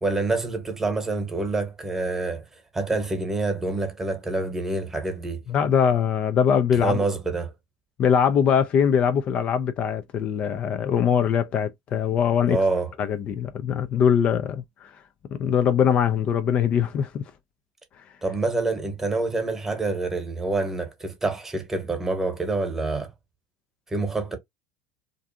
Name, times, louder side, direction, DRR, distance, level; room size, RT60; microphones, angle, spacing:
voice 1, 0.0-2.4 2.7-5.4 6.7-7.5 12.5-12.9 18.2-23.1 23.9-24.4, right 3 dB, 15° right, 1.0 m, -27 dB
voice 2, 5.5-7.0 8.0-12.6 13.0-14.9 15.4-17.2, left 8 dB, 45° left, 0.4 m, -22 dB
2.5 x 2.2 x 2.7 m
hypercardioid pair, 85°, 3 cm